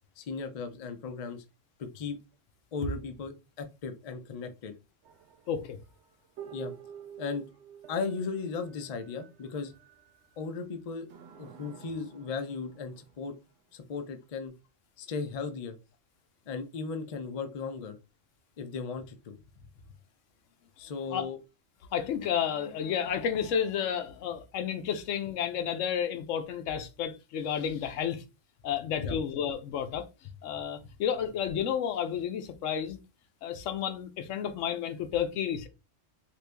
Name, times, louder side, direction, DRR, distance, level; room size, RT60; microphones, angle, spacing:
voice 1, 0.2-1.4 1.8-2.2 2.7-4.7 6.5-6.7 7.2-7.4 7.9-9.7 10.4-11.1 11.4-13.3 13.7-14.5 15.0-15.8 16.5-18.0 18.6-19.4 20.8-21.4 29.0-29.2, left 4 dB, 60° left, 0.4 m, -36 dB
sound 1, 5.0-10.5 11.1-13.5 14.5-14.6, right 8 dB, 70° right, 0.8 m, -49 dB
voice 2, 5.5-5.8 21.1-21.3 21.9-28.2 28.6-30.1 30.4-33.0 33.4-35.7, left 8 dB, 80° left, 0.9 m, -31 dB
3.0 x 2.5 x 3.3 m
omnidirectional pair, 1.3 m